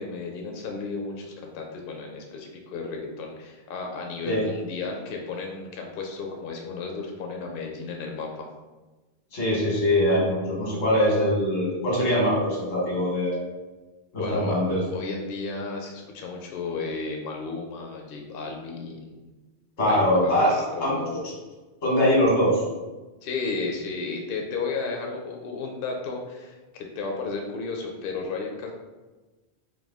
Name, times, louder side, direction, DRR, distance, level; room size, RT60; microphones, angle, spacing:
voice 1, 0.0-8.5 14.1-14.6 14.9-19.3 19.8-21.2 23.2-28.7, left 4 dB, 60° left, 1 dB, 0.7 m, -33 dB
voice 2, 9.3-13.4 14.1-15.1 19.8-20.5 20.8-21.0 21.8-22.6, equal, 85° left, -4 dB, 1.6 m, -22 dB
4.7 x 2.2 x 3.4 m, 1.2 s
omnidirectional pair, 1.1 m